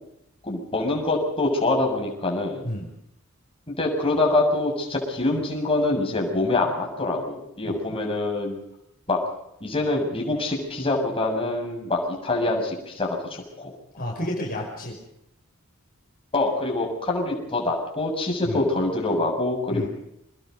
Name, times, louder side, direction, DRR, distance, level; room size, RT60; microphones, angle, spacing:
voice 1, 0.4-2.7 3.7-8.6 9.1-9.2 9.6-13.7 16.3-19.9, left 2 dB, 25° left, 0 dB, 6.9 m, -25 dB
voice 2, 7.6-8.0 14.0-15.0 18.4-18.7 19.7-19.9, left 1 dB, 40° left, -2 dB, 5.6 m, -31 dB
26.5 x 21.0 x 5.4 m, 0.80 s
head